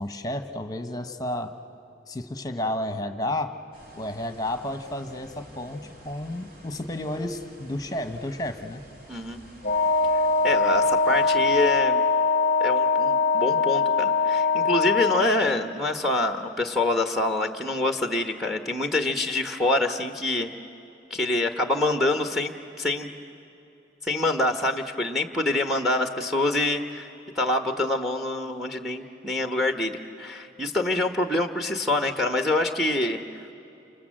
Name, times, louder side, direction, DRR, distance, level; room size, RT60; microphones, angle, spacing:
voice 1, 0.0-1.5 2.1-3.5 3.9-8.8, left 1 dB, 20° left, 8 dB, 1.3 m, -31 dB
sound 1, 3.7-11.8, equal, 50° right, 3.5 m, -50 dB
voice 2, 9.1-9.4 10.1-12.0 12.6-20.5 21.1-22.5 22.8-23.1 24.0-27.1 27.3-33.2, left 2 dB, ahead, 6 dB, 1.1 m, -26 dB
Wind instrument woodwind instrument, 9.6-15.4, left 4 dB, 35° left, 0.8 m, -22 dB
29.5 x 26.5 x 7.6 m, 2.9 s
head